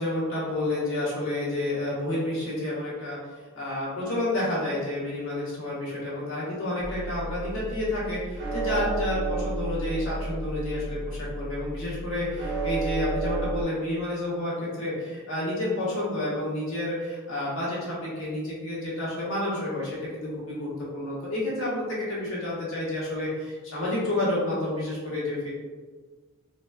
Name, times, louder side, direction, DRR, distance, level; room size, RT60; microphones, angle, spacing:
voice 1, 0.0-3.2 3.5-25.5, left 1 dB, 80° left, -7 dB, 1.2 m, -30 dB
sound 1, 6.8-13.6, right 2 dB, 50° right, 0.6 m, -32 dB
3.9 x 2.2 x 2.3 m, 1.4 s
head